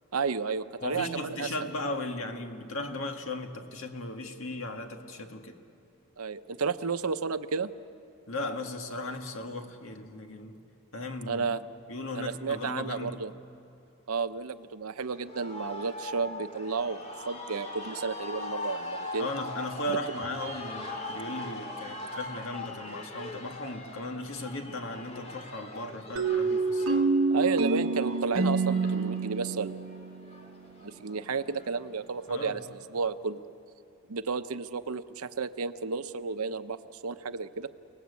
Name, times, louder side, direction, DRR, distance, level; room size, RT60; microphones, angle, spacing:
voice 1, 0.1-1.7 6.2-7.7 11.3-11.6 12.1-13.3 14.1-19.3 19.9-20.0 27.3-29.8 30.8-33.4 34.1-37.7, right 5 dB, 85° right, 0.8 m, -32 dB
voice 2, 0.8-5.6 8.3-10.6 10.9-11.5 11.9-13.3 19.2-27.1 32.3-32.6, left 1 dB, 65° left, 1.9 m, -36 dB
sound 1, 15.0-32.6, left 2 dB, 30° left, 2.3 m, -41 dB
sound 2, 26.2-30.8, right 3 dB, 65° right, 1.2 m, -27 dB
29.5 x 19.0 x 8.4 m
head